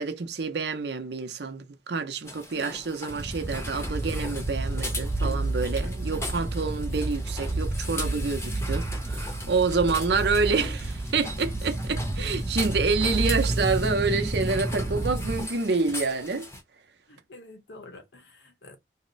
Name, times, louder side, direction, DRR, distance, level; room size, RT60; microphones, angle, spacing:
voice 1, 0.0-16.5, right 4 dB, 70° right, 0.6 m, -28 dB
sound 1, 2.2-16.6, left 1 dB, 15° left, 0.7 m, -39 dB
sound 2, 3.1-15.4, right 2 dB, 15° right, 0.4 m, -30 dB
voice 2, 9.7-10.1 12.2-12.4 17.1-18.8, left 2 dB, 80° left, 0.9 m, -47 dB
2.7 x 2.1 x 3.9 m
head